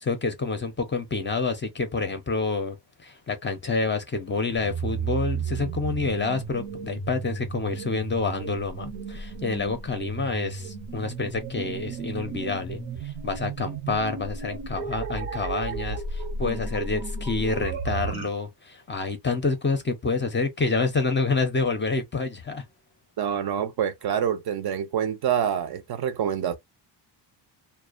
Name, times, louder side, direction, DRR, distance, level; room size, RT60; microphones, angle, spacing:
voice 1, 0.0-22.6, left 4 dB, 25° left, 0.5 m, -28 dB
sound 1, 4.5-18.3, right 5 dB, 85° right, 0.8 m, -34 dB
voice 2, 23.2-26.5, right 9 dB, 55° right, 0.5 m, -26 dB
2.4 x 2.1 x 2.4 m
cardioid pair, 125°, 46 cm